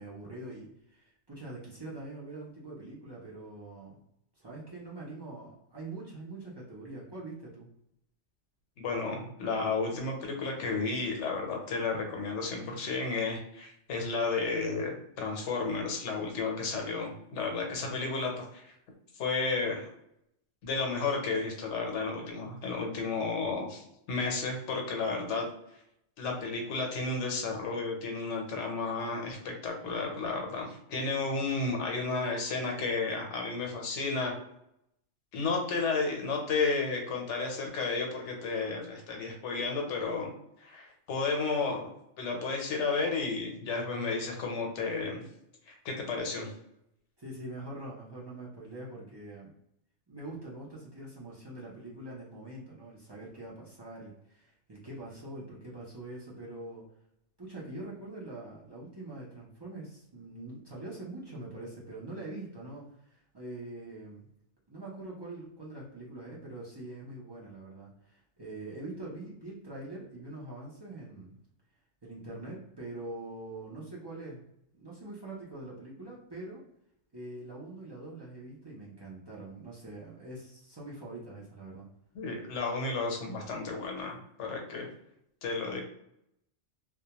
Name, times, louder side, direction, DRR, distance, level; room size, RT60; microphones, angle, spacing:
voice 1, 0.0-4.0 4.4-7.7 17.8-18.0 47.2-49.5 50.1-56.8 57.4-64.3 64.7-71.4 72.0-74.4 74.7-76.6 77.1-81.9, right 2 dB, 35° right, -6 dB, 0.4 m, -44 dB
voice 2, 8.8-18.7 19.2-19.9 20.6-25.5 26.2-34.3 35.3-40.3 40.6-41.9 42.2-45.2 45.7-46.5 82.1-84.9 85.4-85.8, left 4 dB, 75° left, 1 dB, 1.0 m, -32 dB
2.2 x 2.1 x 2.8 m, 0.78 s
omnidirectional pair, 1.2 m